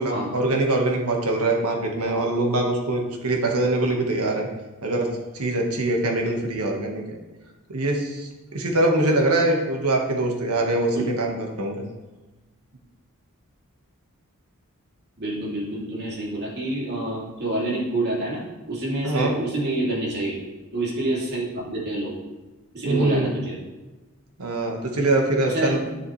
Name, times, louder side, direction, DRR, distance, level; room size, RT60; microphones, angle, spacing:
voice 1, 0.0-4.5 4.8-7.2 7.7-11.9 19.0-19.3 22.8-23.3 24.4-25.9, right 2 dB, 75° right, 1 dB, 1.5 m, -23 dB
voice 2, 15.2-20.4 20.7-22.2 22.7-23.6 25.4-25.7, right 1 dB, 50° right, -5 dB, 2.8 m, -27 dB
9.7 x 7.1 x 3.3 m, 1.1 s
head